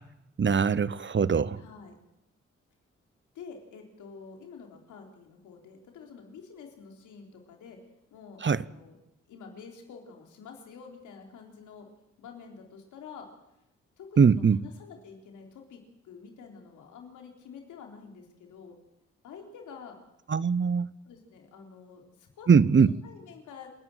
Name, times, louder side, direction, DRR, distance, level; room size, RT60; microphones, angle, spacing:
voice 1, 0.4-1.6 8.4-8.6 14.2-14.6 20.3-20.9 22.5-22.9, right 6 dB, 40° right, 0.9 m, -21 dB
voice 2, 1.6-2.0 3.3-7.8 8.1-9.0 9.3-11.9 12.2-13.3 14.0-18.8 19.2-20.0 21.0-23.7, left 5 dB, 85° left, 3.9 m, -48 dB
28.0 x 11.0 x 9.2 m
supercardioid pair, 45°, 29 cm